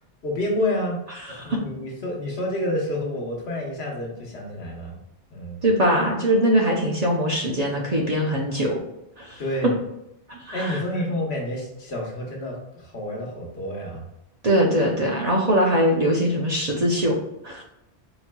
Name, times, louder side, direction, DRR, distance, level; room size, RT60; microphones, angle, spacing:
voice 1, 0.2-1.0 1.4-5.0 5.3-5.6 9.4-9.8 10.5-14.0, left 1 dB, 75° left, -1 dB, 1.2 m, -29 dB
voice 2, 1.3-1.6 5.6-8.8 9.2-9.4 10.3-10.8 14.4-17.2 17.4-17.6, equal, 45° right, -1 dB, 0.7 m, -22 dB
4.3 x 4.1 x 2.2 m, 0.86 s
omnidirectional pair, 1.1 m